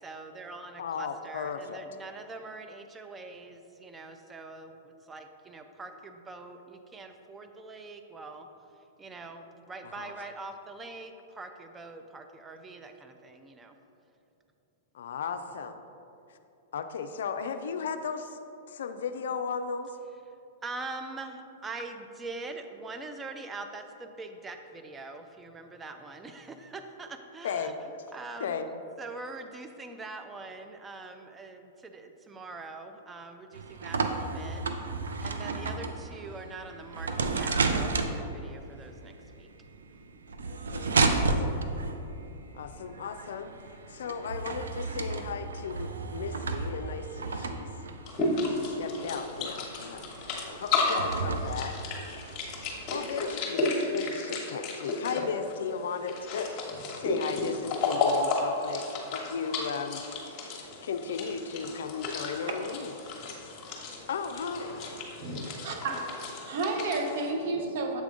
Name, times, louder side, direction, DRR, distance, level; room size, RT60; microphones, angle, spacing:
voice 1, 0.0-8.5 9.0-13.7 20.6-28.6 29.0-34.6 35.2-39.5, right 3 dB, 15° right, 6 dB, 0.4 m, -43 dB
voice 2, 0.8-1.8 10.0-10.1 14.9-15.8 16.7-18.4 18.7-19.9 27.4-27.7 28.4-28.7 40.5-41.6 42.5-43.5 43.9-47.7 48.5-50.0 50.6-51.8 52.9-60.6 60.8-62.9 64.1-64.8, left 6 dB, 75° left, 8 dB, 0.3 m, -35 dB
sound 1, 33.5-53.0, right 3 dB, 90° right, 0.4 m, -33 dB
sound 2, 48.1-67.3, left 3 dB, 40° left, 1.1 m, -33 dB
voice 3, 65.2-66.0 66.4-68.0, right 3 dB, 65° right, 3 dB, 0.8 m, -31 dB
7.4 x 3.5 x 3.7 m, 2.8 s
hypercardioid pair, 120°, 0 cm